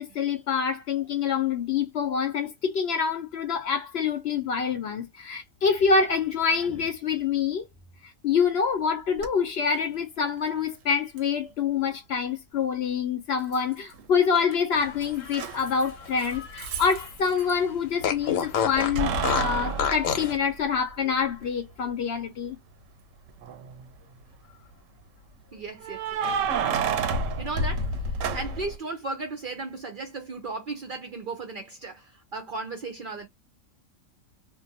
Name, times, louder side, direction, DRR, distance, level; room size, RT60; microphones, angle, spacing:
voice 1, 0.0-7.7 8.0-22.6, left 6 dB, 65° left, 0.7 m, -26 dB
Keys jangling, 9.2-9.3 11.2-11.3 13.5-14.1 14.4-17.5 18.8-20.9 21.4-21.5 23.3-23.8 25.8-28.8, right 4 dB, 80° right, 1.0 m, -30 dB
Fart, 15.0-17.1 17.4-17.5 18.0-20.4, left 7 dB, 85° left, 1.1 m, -29 dB
voice 2, 25.5-26.5 27.4-33.3, right 3 dB, 55° right, 0.6 m, -36 dB
2.5 x 2.2 x 2.6 m
omnidirectional pair, 1.3 m